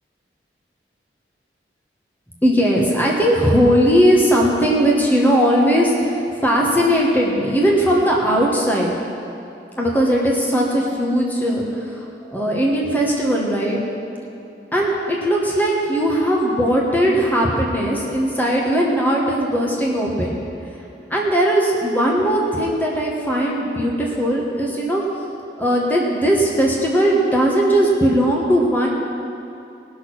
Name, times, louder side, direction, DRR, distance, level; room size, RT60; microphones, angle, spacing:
voice 1, 2.4-8.9 9.7-11.6 11.9-12.0 12.3-13.8 14.7-20.3 21.1-25.0 25.6-28.9, equal, 10° left, -3 dB, 1.3 m, -18 dB
19.0 x 6.4 x 6.1 m, 2.8 s
head